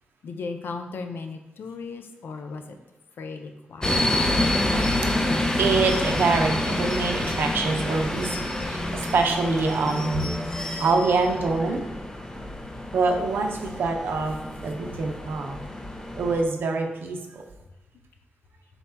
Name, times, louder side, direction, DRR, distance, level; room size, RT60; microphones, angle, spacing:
voice 1, 0.2-2.8 3.2-4.0, left 4 dB, 80° left, 6 dB, 0.4 m, -36 dB
sound 1, 3.8-16.4, left 1 dB, 20° left, 0.5 m, -28 dB
voice 2, 5.6-10.4 10.8-11.9 12.9-15.6 16.1-17.4, right 3 dB, 85° right, 3 dB, 0.5 m, -25 dB
4.0 x 2.2 x 4.4 m, 1.0 s
cardioid pair, 85°, 4 cm